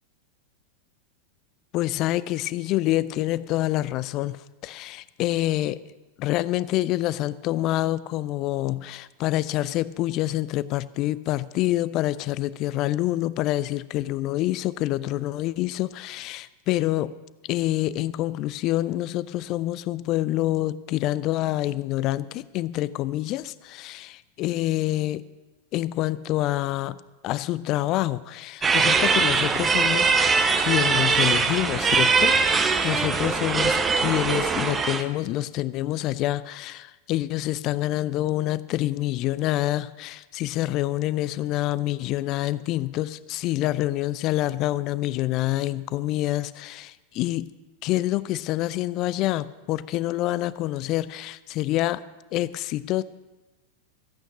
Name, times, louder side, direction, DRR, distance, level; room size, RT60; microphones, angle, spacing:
voice 1, 1.7-5.8 6.2-17.1 17.5-25.2 25.7-30.1 30.6-47.5 47.8-52.0 52.3-53.0, left 15 dB, 40° left, 18 dB, 0.4 m, -27 dB
sound 1, 28.6-35.0, right 4 dB, 20° right, 0.8 m, -21 dB
14.0 x 8.9 x 6.1 m, 1.1 s
figure-of-eight pair, 90°, 0 cm